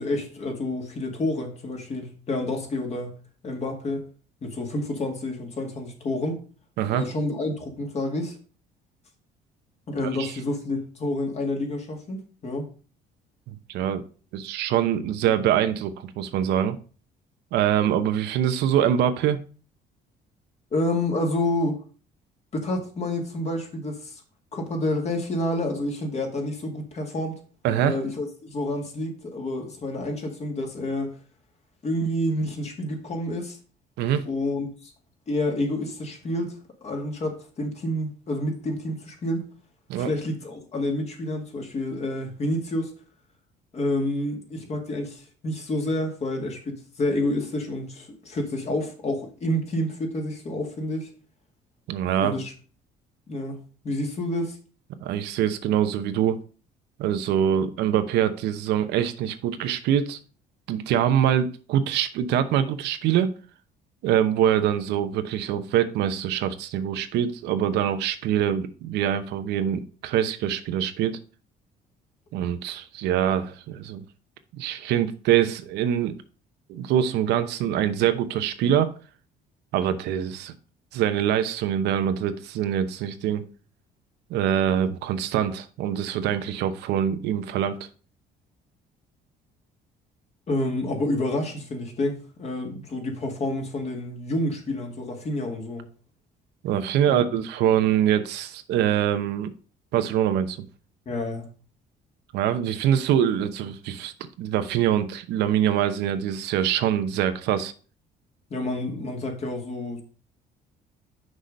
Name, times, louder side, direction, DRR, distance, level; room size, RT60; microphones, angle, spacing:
voice 1, 0.0-3.2 3.4-4.0 4.4-6.4 6.9-8.4 9.9-12.7 20.7-21.8 22.5-24.2 24.5-27.4 27.8-31.2 31.8-33.6 34.3-34.9 35.3-36.5 36.8-39.4 40.0-42.9 43.7-51.1 52.2-52.5 53.3-53.6 53.8-54.6 90.5-95.9 97.0-97.4 101.1-101.5 108.5-110.0, left 1 dB, 40° left, 2 dB, 2.2 m, -29 dB
voice 2, 6.8-7.1 10.2-10.3 13.5-14.0 14.3-16.8 17.5-19.4 27.6-28.0 34.0-34.2 39.9-40.1 51.9-52.3 55.0-56.4 57.0-60.2 60.7-63.3 64.0-71.2 72.3-74.0 74.5-76.1 76.7-78.9 79.7-80.5 80.9-83.4 84.3-87.8 96.6-99.5 99.9-100.6 102.3-107.7, right 10 dB, 80° right, 10 dB, 0.8 m, -24 dB
6.3 x 5.0 x 5.3 m, 0.38 s
cardioid pair, 110°, 17 cm